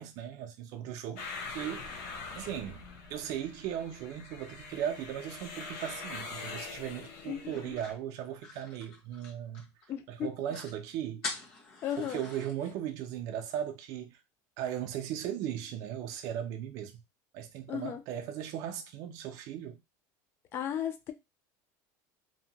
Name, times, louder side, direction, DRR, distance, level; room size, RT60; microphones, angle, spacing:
voice 1, 0.0-2.8 3.1-9.7 10.1-11.3 12.0-14.2 14.6-17.0 17.3-19.8, right 10 dB, 45° right, 0.4 m, -37 dB
sound 1, 1.2-7.9, left 4 dB, 70° left, 0.7 m, -43 dB
voice 2, 7.3-7.8 9.9-10.3 11.8-12.2 17.7-18.0 20.5-21.1, left 10 dB, 30° left, 0.3 m, -35 dB
sound 2, 7.5-9.9 10.2-10.3 10.5-10.8 11.2-12.5, left 3 dB, 50° left, 1.1 m, -43 dB
2.7 x 2.1 x 2.8 m
cardioid pair, 175°, 8 cm